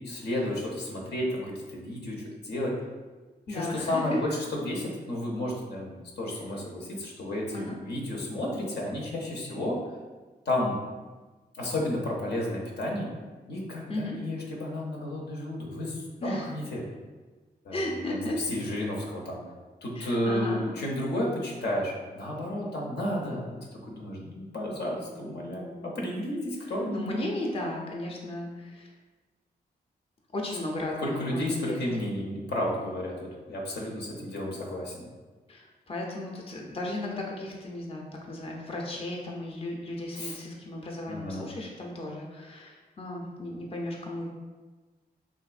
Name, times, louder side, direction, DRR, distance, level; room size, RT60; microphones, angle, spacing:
voice 1, 0.0-2.7 3.5-9.8 10.5-10.8 11.6-13.1 13.5-16.8 17.6-18.2 18.5-19.4 19.8-27.2 31.0-35.1 40.1-40.4 41.1-41.5, left 1 dB, 75° left, -2 dB, 0.7 m, -32 dB
voice 2, 3.5-4.2 7.5-7.8 13.9-14.2 16.2-16.5 17.7-18.4 20.0-20.6 26.9-28.9 30.3-31.8 35.5-44.3, left 1 dB, 35° left, -1 dB, 0.5 m, -35 dB
3.4 x 2.6 x 2.4 m, 1.3 s
cardioid pair, 65°, 17 cm